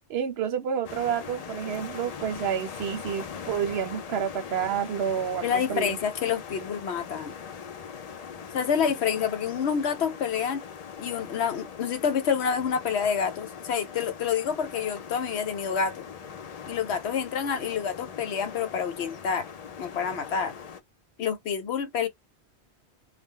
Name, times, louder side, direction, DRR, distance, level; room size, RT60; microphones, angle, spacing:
voice 1, 0.1-6.0, right 8 dB, 70° right, 0.8 m, -29 dB
sound 1, 0.8-20.8, left 7 dB, 55° left, 0.4 m, -41 dB
voice 2, 5.4-7.4 8.5-10.6 11.0-16.1 16.7-19.5 19.8-20.5 21.2-22.1, left 7 dB, 70° left, 0.9 m, -28 dB
2.3 x 2.1 x 3.6 m
omnidirectional pair, 1.2 m